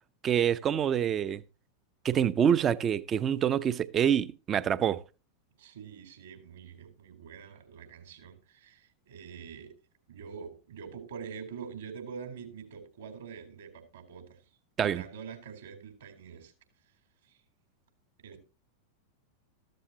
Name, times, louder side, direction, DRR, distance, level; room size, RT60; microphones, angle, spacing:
voice 1, 0.2-1.4 2.0-5.0 14.8-15.0, right 9 dB, 25° right, 0.8 m, -26 dB
voice 2, 5.6-9.8 10.1-14.5 14.8-16.5 17.2-17.4 18.2-18.4, right 6 dB, 65° right, 4.1 m, -45 dB
14.5 x 13.5 x 2.9 m
figure-of-eight pair, 90°, 0 cm